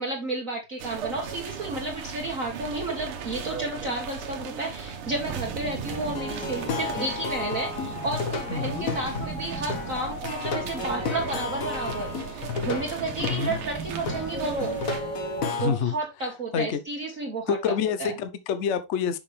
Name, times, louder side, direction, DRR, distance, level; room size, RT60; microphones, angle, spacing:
voice 1, 0.0-14.7 15.6-17.7 18.0-18.1, right 2 dB, 45° right, 1.5 m, -32 dB
sound 1, 0.8-15.0, right 7 dB, 90° right, 1.9 m, -38 dB
sound 2, 5.2-15.4, right 6 dB, 70° right, 1.7 m, -40 dB
Plucked string instrument, 5.9-15.7, left 3 dB, 45° left, 1.4 m, -32 dB
voice 2, 8.5-8.9 13.2-13.6 15.4-15.9 16.5-16.8 17.5-19.2, left 7 dB, 70° left, 0.6 m, -27 dB
6.6 x 5.7 x 3.3 m
omnidirectional pair, 2.3 m